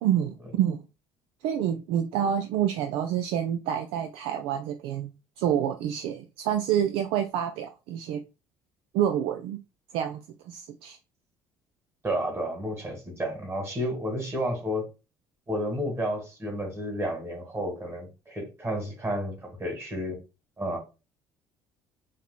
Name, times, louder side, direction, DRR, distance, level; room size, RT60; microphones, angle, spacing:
voice 1, 0.0-0.8 1.4-8.2 8.9-9.6 9.9-11.0, right 10 dB, 55° right, 0.3 m, -28 dB
voice 2, 12.0-14.9 15.5-20.2 20.6-20.8, equal, 25° right, 1.7 m, -31 dB
4.6 x 2.9 x 2.2 m
figure-of-eight pair, 55°, 12 cm